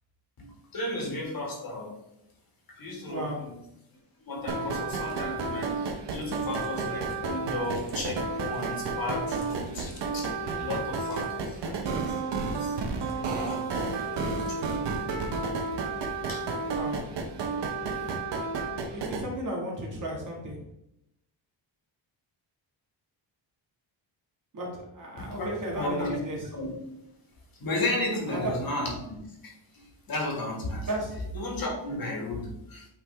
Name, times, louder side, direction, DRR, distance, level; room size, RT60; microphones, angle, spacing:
voice 1, 0.4-1.9 2.8-3.6 4.3-12.8 13.1-13.6 14.1-14.9 16.3-16.4 25.2-26.2 26.5-26.7 27.6-29.2 29.4-30.9 31.3-32.9, left 2 dB, 50° left, 0 dB, 1.8 m, -34 dB
voice 2, 3.1-3.4 16.7-17.0 18.9-20.6 24.5-26.5 28.3-28.5 30.9-31.2, right 1 dB, 40° right, -2 dB, 1.7 m, -34 dB
sound 1, 4.5-19.2, right 4 dB, 65° right, 0.9 m, -31 dB
8.6 x 3.7 x 3.3 m, 0.82 s
wide cardioid pair, 160°, 46 cm